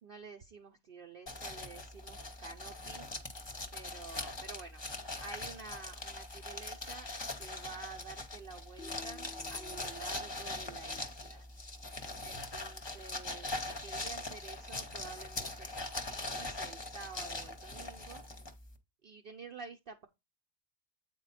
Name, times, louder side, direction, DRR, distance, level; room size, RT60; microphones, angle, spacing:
voice 1, 0.0-3.1 3.7-4.8 5.2-7.1 7.3-11.5 12.2-18.2 19.0-20.1, right 4 dB, 55° right, 0.8 m, -50 dB
sound 1, 1.3-18.8, left 2 dB, 25° left, 0.9 m, -42 dB
sound 2, 8.8-10.9, left 4 dB, 65° left, 0.9 m, -54 dB
8.3 x 4.4 x 4.2 m
omnidirectional pair, 1.3 m